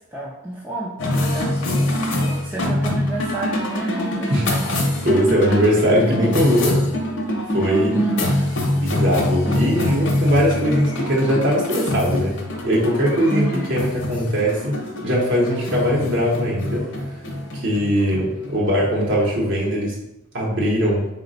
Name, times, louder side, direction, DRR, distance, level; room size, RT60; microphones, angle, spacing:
voice 1, 0.1-4.7 7.9-8.4 13.3-13.6, right 2 dB, 10° right, -5 dB, 0.3 m, -29 dB
sound 1, 1.0-19.6, left 1 dB, 55° left, 0.7 m, -24 dB
voice 2, 4.3-6.8 7.5-8.0 8.7-12.3 12.6-16.9 17.5-20.0 20.3-21.1, equal, 55° right, -4 dB, 0.7 m, -20 dB
3.9 x 2.1 x 3.9 m, 0.89 s
head